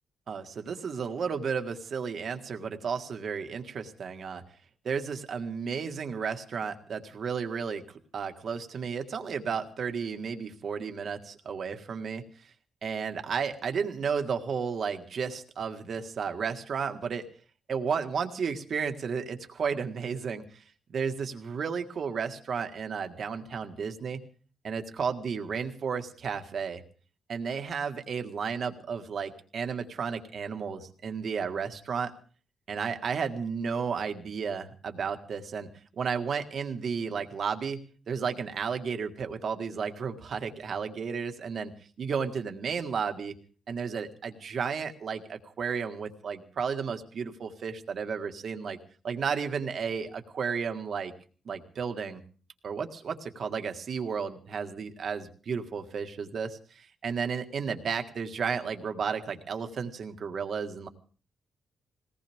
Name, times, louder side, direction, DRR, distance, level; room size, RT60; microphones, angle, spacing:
voice 1, 0.3-4.4 4.8-7.8 8.1-12.2 12.8-17.2 17.7-20.4 20.9-24.2 24.6-26.8 27.3-32.1 32.7-35.7 36.0-37.8 38.1-41.7 42.0-43.4 43.7-48.8 49.0-51.1 51.5-52.2 52.6-60.9, right 6 dB, 45° right, 6 dB, 1.8 m, -33 dB
21.5 x 18.0 x 3.6 m, 0.41 s
wide cardioid pair, 165°, 0 cm